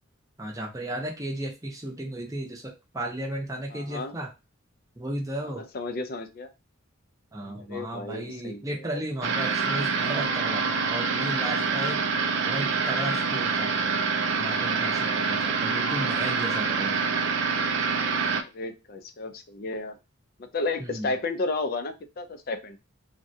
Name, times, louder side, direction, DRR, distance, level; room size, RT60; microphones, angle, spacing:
voice 1, 0.4-4.3 5.0-5.7 7.3-12.0 12.4-14.0 14.4-17.0 20.8-21.1, right 1 dB, 15° right, 1 dB, 0.6 m, -34 dB
voice 2, 3.7-4.1 5.4-6.5 7.7-9.0 15.8-16.2 18.5-19.9 20.4-22.8, left 3 dB, 45° left, 8 dB, 0.4 m, -33 dB
sound 1, 9.2-18.4, right 5 dB, 60° right, 0.4 m, -26 dB
3.6 x 2.2 x 2.6 m, 0.27 s
head